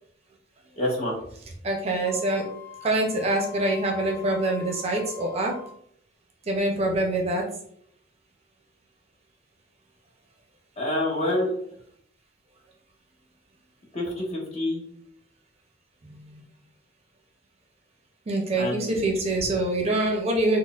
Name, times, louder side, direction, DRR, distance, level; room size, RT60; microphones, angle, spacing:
voice 1, 0.8-1.2 10.8-11.5 13.9-14.8 18.6-18.9, left 1 dB, 35° left, -3 dB, 1.0 m, -27 dB
voice 2, 1.6-2.4 2.8-5.6 6.5-7.5 16.0-16.4 18.3-20.6, right 2 dB, 35° right, 1 dB, 0.5 m, -25 dB
Wind instrument woodwind instrument, 2.0-5.8, left 9 dB, 65° left, 0.5 m, -45 dB
4.2 x 2.0 x 2.3 m, 0.65 s
head